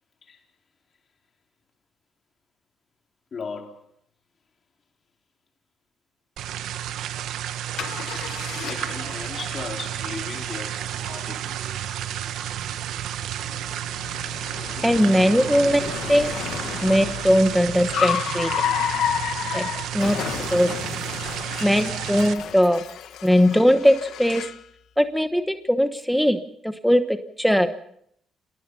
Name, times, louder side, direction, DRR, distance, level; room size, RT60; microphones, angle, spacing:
voice 1, 3.3-3.9 8.6-11.9 14.0-14.2 14.7-14.9, left 5 dB, 45° left, 2 dB, 4.2 m, -37 dB
sound 1, 6.4-22.3, right 11 dB, 85° right, 1.1 m, -31 dB
Car, 7.8-24.7, left 10 dB, 80° left, 1.4 m, -32 dB
voice 2, 14.8-16.3 16.8-18.5 19.5-19.7 19.9-20.2 20.5-20.7 21.6-22.8 23.2-24.5 25.0-27.7, equal, ahead, 9 dB, 1.1 m, -20 dB
27.0 x 18.5 x 5.6 m, 0.69 s
cardioid pair, 90°, 0 cm